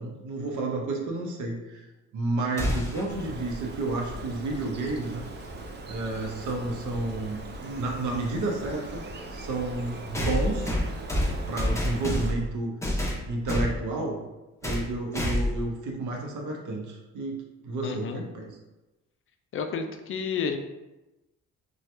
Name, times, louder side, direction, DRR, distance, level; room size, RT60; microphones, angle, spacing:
voice 1, 0.0-1.9 2.1-5.2 5.9-9.0 9.3-10.7 11.5-12.7 13.2-14.2 14.6-18.5, right 2 dB, 75° right, 0 dB, 0.8 m, -31 dB
sound 1, 2.6-3.1 5.3-5.4 6.5-6.6 10.1-12.5 12.8-13.7 14.6-14.9 15.1-15.6, left 1 dB, 10° left, 0.7 m, -27 dB
Bird, 3.1-12.3, right 2 dB, 35° right, 0.4 m, -40 dB
voice 2, 17.8-18.2 19.5-20.6, left 6 dB, 45° left, 6 dB, 0.4 m, -30 dB
2.8 x 2.3 x 3.2 m, 1.0 s
cardioid pair, 90°, 30 cm